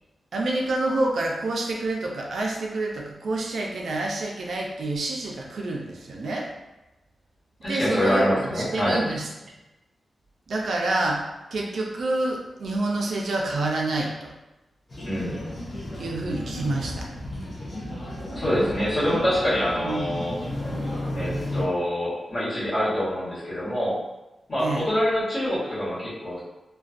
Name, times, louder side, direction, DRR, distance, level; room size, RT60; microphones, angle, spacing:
voice 1, 0.3-6.5 7.7-9.3 10.5-11.2 11.5-14.3 16.0-17.1 19.8-20.2 24.6-24.9, right 2 dB, 65° right, -1 dB, 0.4 m, -28 dB
voice 2, 7.6-9.0 15.0-15.4 18.3-20.4 21.1-24.0 24.5-26.4, equal, 45° left, -10 dB, 1.2 m, -25 dB
sound 1, 14.9-21.6, left 1 dB, 30° left, 0.5 m, -33 dB
2.4 x 2.2 x 2.4 m, 1.0 s
wide cardioid pair, 175°, 0 cm